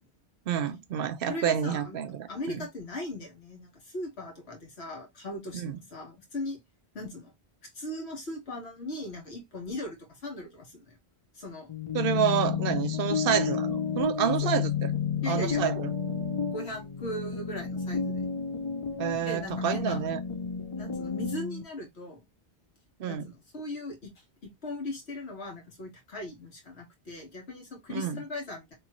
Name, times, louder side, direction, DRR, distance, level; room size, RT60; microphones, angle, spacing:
voice 1, 0.5-2.6 5.5-5.8 11.9-14.9 15.3-15.9 19.0-20.2 23.0-23.3 27.9-28.2, right 9 dB, 65° right, 0.7 m, -29 dB
voice 2, 1.3-2.0 2.3-6.6 6.9-7.3 7.7-11.0 11.3-11.7 14.3-14.5 15.2-15.8 16.5-18.2 19.2-20.0 20.8-22.2 23.1-24.1 24.4-28.7, left 1 dB, 75° left, 1.5 m, -38 dB
sound 1, 11.7-21.6, left 7 dB, 55° left, 0.3 m, -31 dB
3.1 x 3.0 x 2.9 m
omnidirectional pair, 1.1 m